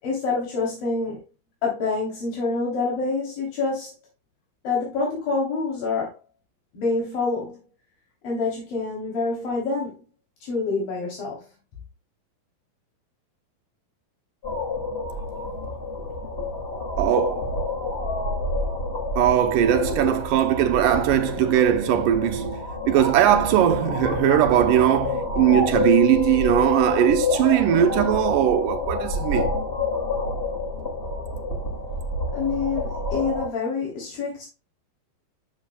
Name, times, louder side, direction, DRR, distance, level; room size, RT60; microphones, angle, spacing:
voice 1, 0.0-1.2 1.6-3.9 4.6-6.2 6.7-7.6 8.2-10.0 10.4-11.5 32.3-34.5, left 4 dB, 70° left, 5.0 m, -27 dB
sound 1, 14.4-33.5, left 3 dB, 20° left, 2.2 m, -28 dB
voice 2, 17.0-17.5 19.2-29.5, right 10 dB, 75° right, 2.4 m, -20 dB
13.0 x 7.7 x 2.3 m
omnidirectional pair, 4.2 m